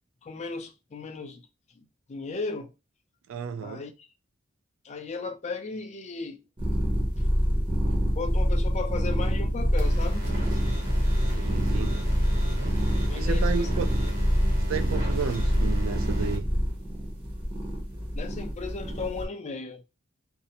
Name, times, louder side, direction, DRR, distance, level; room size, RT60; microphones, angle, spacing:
voice 1, 0.2-1.5 1.8-2.7 3.6-4.1 4.8-6.5 7.2-7.3 7.9-10.3 13.1-13.7 18.1-19.8, left 4 dB, 35° left, 0.4 m, -36 dB
voice 2, 3.3-3.8 11.4-12.0 13.1-13.9 14.7-16.5, right 6 dB, 90° right, 0.3 m, -32 dB
sound 1, 6.6-19.3, equal, 25° right, 0.8 m, -26 dB
sound 2, 9.8-16.4, equal, 45° right, 1.0 m, -40 dB
2.6 x 2.0 x 2.8 m
head